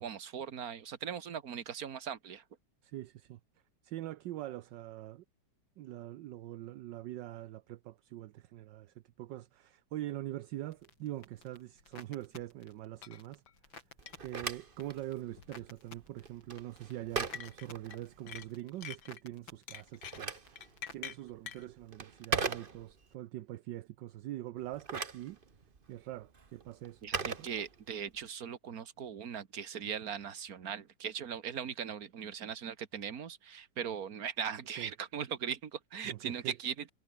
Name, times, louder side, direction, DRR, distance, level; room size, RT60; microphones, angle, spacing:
voice 1, 0.0-2.4 27.0-36.9, right 8 dB, 50° right, 1.9 m, -39 dB
voice 2, 2.8-3.4 3.8-5.2 5.8-13.4 14.2-25.4 25.9-27.5 34.7-34.9 36.0-36.5, right 14 dB, 75° right, 1.3 m, -43 dB
sound 1, 10.7-21.1, left 3 dB, 90° left, 5.6 m, -57 dB
sound 2, 13.0-13.2 13.5-13.6 14.1-14.2 15.4-15.6 17.3-18.0 18.3-19.2 19.7-21.6, left 9 dB, 65° left, 1.8 m, -45 dB
Telephone, 14.0-18.5 19.7-23.1 24.6-28.2, right 5 dB, 30° right, 1.4 m, -41 dB
omnidirectional pair, 2.1 m